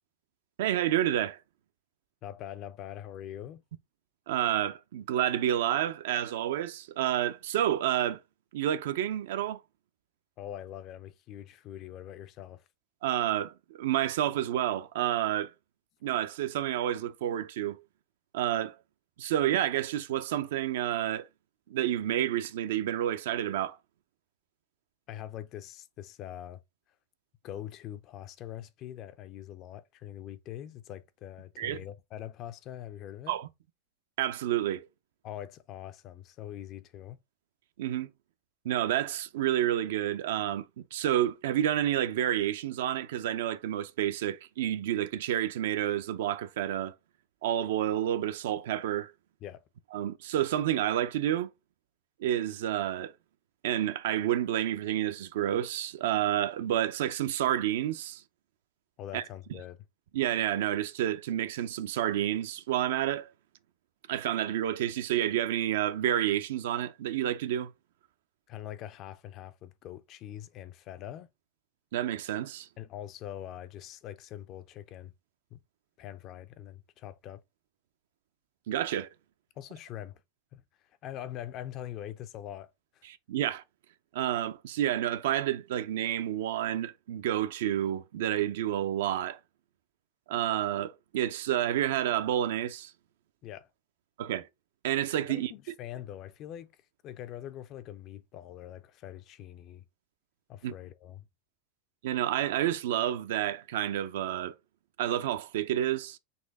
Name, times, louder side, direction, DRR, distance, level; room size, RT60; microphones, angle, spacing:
voice 1, 0.6-1.4 4.3-8.2 8.5-9.6 13.0-15.5 16.0-17.8 18.3-18.8 19.2-21.3 21.7-23.8 31.6-31.8 33.3-33.5 34.2-34.9 37.8-38.1 38.6-46.9 47.4-49.1 49.9-51.5 52.2-53.1 53.6-58.2 59.1-59.2 60.1-63.3 64.1-67.7 71.9-72.7 78.7-79.1 83.0-83.6 84.1-89.4 90.3-92.9 94.2-94.5 94.8-95.5 100.6-100.7 102.0-104.6 105.0-106.2, right 11 dB, 75° right, 0.5 m, -29 dB
voice 2, 2.2-3.6 10.4-12.6 25.1-26.6 27.4-33.3 35.2-37.2 49.4-49.6 59.0-59.8 68.5-71.3 72.8-75.1 75.5-75.6 76.0-77.4 79.6-80.2 80.5-80.6 81.0-82.7 83.0-83.1 93.4-93.7 95.3-96.7 97.0-99.8 100.5-101.2, left 11 dB, 40° left, 0.4 m, -43 dB
4.2 x 2.7 x 3.5 m
supercardioid pair, 135°, 0 cm